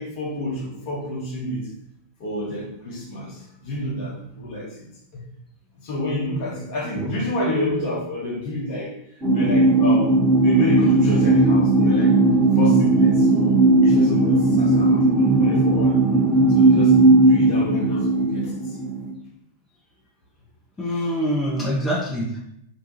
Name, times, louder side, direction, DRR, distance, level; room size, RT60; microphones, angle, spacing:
voice 1, 0.0-1.7 2.2-4.7 5.1-5.2 5.8-9.0 9.3-12.2 12.6-13.6 13.8-16.2 16.5-18.8 20.9-21.1, left 1 dB, 50° left, -3 dB, 1.0 m, -29 dB
sound 1, 9.2-19.0, right 2 dB, 15° right, 1.0 m, -17 dB
voice 2, 20.8-22.4, equal, 10° left, -4 dB, 0.6 m, -25 dB
2.7 x 2.2 x 2.8 m, 0.75 s
figure-of-eight pair, 90°, 0 cm